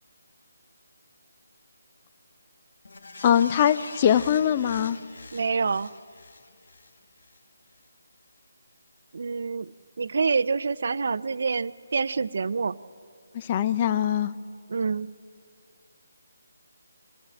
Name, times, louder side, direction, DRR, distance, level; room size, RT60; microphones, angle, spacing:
sound 1, 2.9-7.4 7.8-7.9, left 3 dB, 65° left, 1.3 m, -44 dB
voice 1, 3.2-5.0 13.3-14.3, left 9 dB, 25° left, 15 dB, 0.6 m, -22 dB
voice 2, 5.3-5.9 9.1-12.8 14.7-15.1, right 4 dB, 55° right, 17 dB, 0.5 m, -27 dB
25.0 x 16.5 x 7.7 m, 2.1 s
figure-of-eight pair, 165°, 0 cm